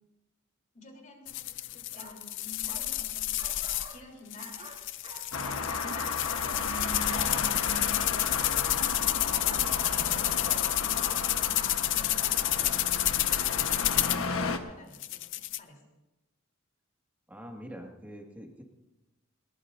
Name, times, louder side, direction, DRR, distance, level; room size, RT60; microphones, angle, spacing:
voice 1, 0.7-4.7 5.7-7.1 7.7-9.6 9.9-12.5 12.9-15.8, left 2 dB, 40° left, 1 dB, 3.5 m, -51 dB
sound 1, 1.3-3.9 4.3-14.3 14.9-15.6, left 14 dB, 60° left, 0.5 m, -30 dB
sound 2, 1.9-2.2 2.7-2.9 3.4-4.1 4.4-6.6 7.1-12.8, right 3 dB, 30° right, 2.8 m, -48 dB
Traffic noise roadway noise, 5.3-14.6, left 4 dB, 85° left, 1.2 m, -34 dB
voice 2, 17.3-18.6, equal, 10° right, 1 dB, 2.0 m, -44 dB
21.0 x 19.5 x 2.7 m, 1.0 s
head